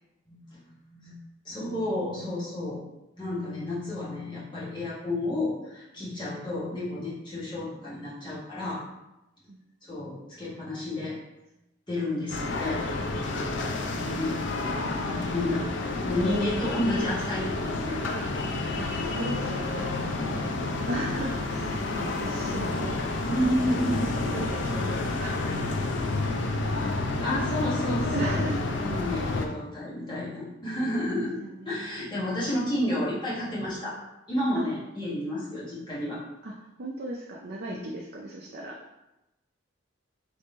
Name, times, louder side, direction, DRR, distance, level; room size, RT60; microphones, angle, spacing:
voice 1, 0.3-0.6 0.9-1.2 1.4-2.8 3.2-8.8 9.8-11.2 11.9-12.8 14.0-15.7 16.0-18.3 22.5-22.7 23.2-24.2 27.2-28.4 28.8-31.4 31.6-33.9 34.3-36.2 37.7-37.8, left 1 dB, 25° left, -8 dB, 1.5 m, -31 dB
sound 1, 12.3-29.5, left 2 dB, 60° left, 0.5 m, -30 dB
voice 2, 18.8-25.4 25.6-25.9 28.1-28.6 31.4-32.4 34.5-34.7 36.4-38.8, right 1 dB, 50° right, -2 dB, 0.5 m, -37 dB
3.5 x 3.3 x 4.2 m, 0.93 s
head